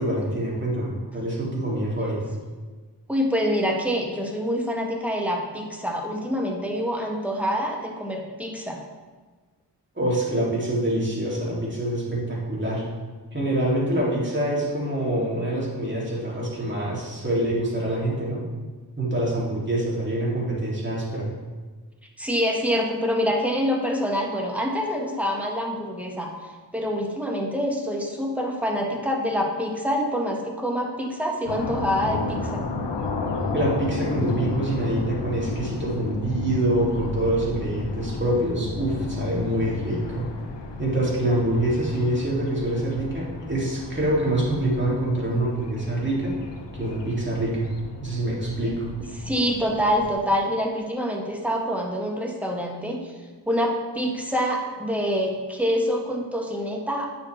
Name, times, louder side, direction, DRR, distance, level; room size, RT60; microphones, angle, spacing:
voice 1, 0.0-2.3 9.9-12.8 13.3-18.4 19.0-21.3 33.5-40.3 40.8-46.4 46.7-47.7 48.0-48.9, right 1 dB, 25° right, -5 dB, 2.8 m, -25 dB
voice 2, 3.1-8.8 22.2-26.3 26.7-32.6 49.2-53.1 53.5-57.1, equal, 5° right, -1 dB, 1.5 m, -26 dB
sound 1, 31.5-50.1, left 3 dB, 80° left, 0.9 m, -33 dB
9.2 x 6.8 x 3.4 m, 1.4 s
cardioid pair, 50°, 42 cm